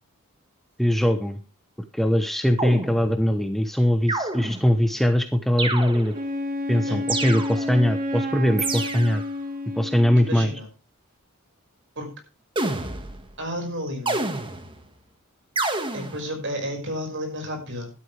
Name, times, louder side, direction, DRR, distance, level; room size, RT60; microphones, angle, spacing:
voice 1, 0.8-1.4 1.8-6.1 6.7-9.2 9.8-10.5, equal, ahead, 7 dB, 0.9 m, -21 dB
sound 1, 2.6-3.4 4.1-4.8 5.6-6.3 7.1-7.9 8.6-9.3 12.6-13.3 14.1-14.9 15.6-16.3, right 2 dB, 20° right, 1.7 m, -29 dB
Wind instrument woodwind instrument, 6.1-10.5, left 1 dB, 40° right, 2.0 m, -30 dB
voice 2, 10.2-10.7 12.0-12.1 13.4-14.2 15.9-17.9, equal, 55° right, 5 dB, 5.6 m, -32 dB
14.0 x 12.0 x 3.4 m, 0.32 s
head